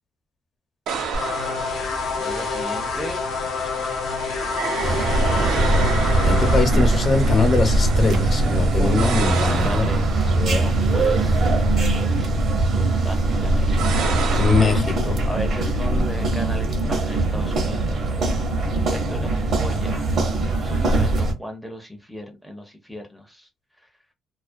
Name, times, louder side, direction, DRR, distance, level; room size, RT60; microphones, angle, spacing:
sound 1, 0.9-14.8, right 6 dB, 80° right, 0.5 m, -32 dB
sound 2, 1.1-6.7, left 4 dB, 75° left, 0.7 m, -27 dB
voice 1, 2.2-3.2 8.8-9.1 9.4-10.0 10.5-12.4 12.7-14.8 15.2-20.1 20.6-23.5 23.8-23.9, equal, 5° right, 0.5 m, -36 dB
sound 3, 4.8-21.3, right 2 dB, 60° right, 0.8 m, -21 dB
voice 2, 6.2-9.8 10.2-10.6 14.4-15.1, left 4 dB, 45° left, 0.8 m, -22 dB
2.3 x 2.1 x 2.5 m
cardioid pair, 90°, 0 cm